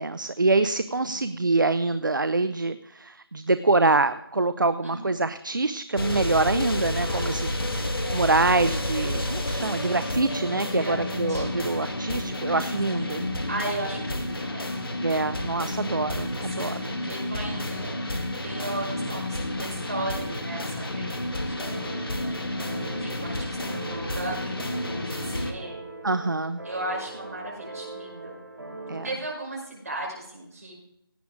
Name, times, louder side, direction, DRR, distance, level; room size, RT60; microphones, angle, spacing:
voice 1, 0.0-13.3 15.0-17.0 26.0-26.6 28.9-29.1, right 3 dB, 55° right, 13 dB, 0.6 m, -25 dB
voice 2, 0.9-1.4 4.8-5.2 7.0-7.4 8.0-8.3 10.7-11.0 11.3-11.6 13.0-14.8 16.4-22.1 22.8-23.6 23.9-25.8 26.6-28.4 28.9-30.7, right 2 dB, 40° right, -2 dB, 5.5 m, -36 dB
sound 1, 6.0-25.5, left 1 dB, 70° left, 2.1 m, -30 dB
sound 2, 21.6-29.1, right 2 dB, 70° right, 4.5 m, -40 dB
17.0 x 8.8 x 3.6 m, 0.77 s
figure-of-eight pair, 180°, 12 cm